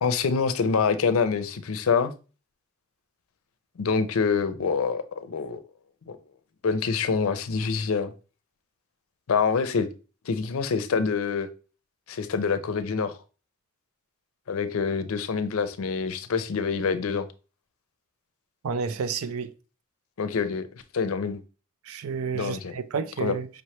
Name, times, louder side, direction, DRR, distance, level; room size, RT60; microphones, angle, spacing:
voice 1, 0.0-2.1 3.8-5.6 6.1-6.2 6.6-8.1 9.3-9.9 10.3-11.5 12.1-13.2 14.5-17.3 20.2-21.4 22.3-22.7 23.2-23.4, left 5 dB, 80° left, 0.5 m, -26 dB
voice 2, 18.6-19.5 21.9-23.5, right 5 dB, 85° right, 0.4 m, -30 dB
5.1 x 3.2 x 2.8 m
head